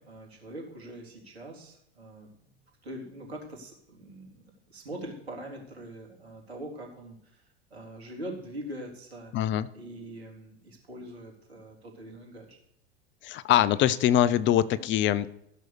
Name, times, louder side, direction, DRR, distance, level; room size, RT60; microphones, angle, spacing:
voice 1, 0.0-2.5 2.8-7.4 7.7-9.3 9.7-12.6, right 1 dB, 85° right, 0 dB, 3.7 m, -43 dB
voice 2, 9.3-9.7 13.2-15.3, left 11 dB, 40° left, 18 dB, 0.7 m, -23 dB
15.0 x 6.4 x 6.8 m, 0.76 s
hypercardioid pair, 90°, 31 cm